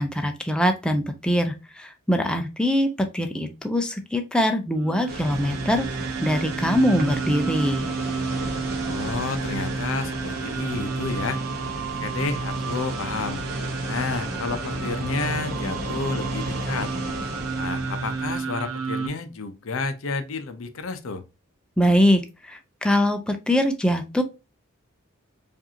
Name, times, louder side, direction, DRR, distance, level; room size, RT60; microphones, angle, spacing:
voice 1, 0.0-7.9 21.8-24.2, equal, 5° left, 0.5 m, -23 dB
sound 1, 4.8-19.1, right 4 dB, 75° right, 0.7 m, -31 dB
sound 2, 5.1-18.4, right 1 dB, 50° right, 1.2 m, -34 dB
voice 2, 8.8-11.4 12.0-13.4 13.9-16.9 17.5-21.2, left 4 dB, 65° left, 0.6 m, -30 dB
4.8 x 2.6 x 2.7 m
head